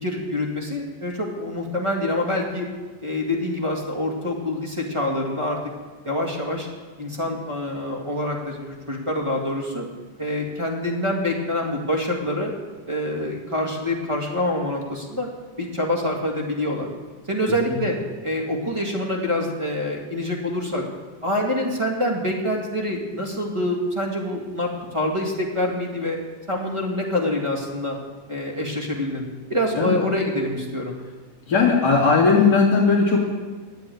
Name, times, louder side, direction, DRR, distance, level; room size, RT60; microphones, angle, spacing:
voice 1, 0.0-2.7 3.0-5.6 6.0-6.7 7.0-9.8 10.2-12.5 12.9-15.3 15.6-16.9 17.3-18.0 18.2-20.8 21.2-26.2 26.5-28.0 28.3-29.2 29.5-31.0, left 1 dB, 15° right, -1 dB, 1.1 m, -26 dB
voice 2, 31.5-33.2, left 4 dB, 35° left, -8 dB, 2.3 m, -17 dB
11.5 x 8.6 x 9.3 m, 1.4 s
omnidirectional pair, 3.8 m